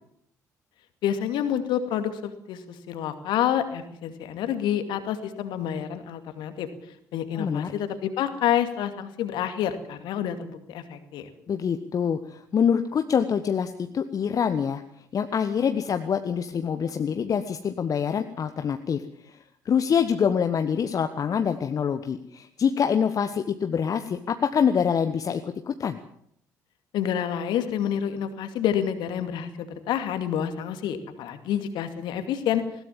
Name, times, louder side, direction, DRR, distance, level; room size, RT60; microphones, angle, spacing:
voice 1, 1.0-6.7 7.1-11.3 26.9-32.6, left 10 dB, 55° left, 9 dB, 2.3 m, -28 dB
voice 2, 7.3-7.7 11.5-14.8 15.1-19.4 19.6-26.0, left 7 dB, 40° left, 8 dB, 1.2 m, -25 dB
20.0 x 18.0 x 7.5 m, 0.70 s
figure-of-eight pair, 50°, 9 cm